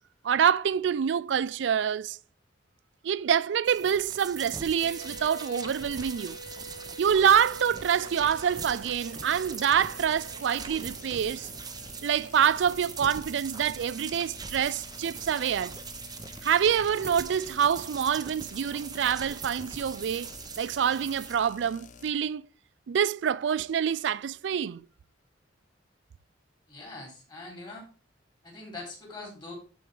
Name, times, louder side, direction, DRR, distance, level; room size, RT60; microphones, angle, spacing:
voice 1, 0.2-2.2 3.0-6.4 7.0-11.5 12.0-15.7 16.4-20.3 20.6-22.4 22.9-24.8, right 8 dB, 75° right, 0.4 m, -26 dB
sound 1, 3.7-21.4, right 5 dB, 20° right, 0.7 m, -42 dB
sound 2, 4.8-13.5, equal, 85° left, 1.1 m, -48 dB
sound 3, 7.1-22.1, left 5 dB, 45° left, 0.6 m, -50 dB
voice 2, 26.7-27.9 28.4-29.5, left 2 dB, 25° left, 3.8 m, -42 dB
12.0 x 4.8 x 3.5 m
head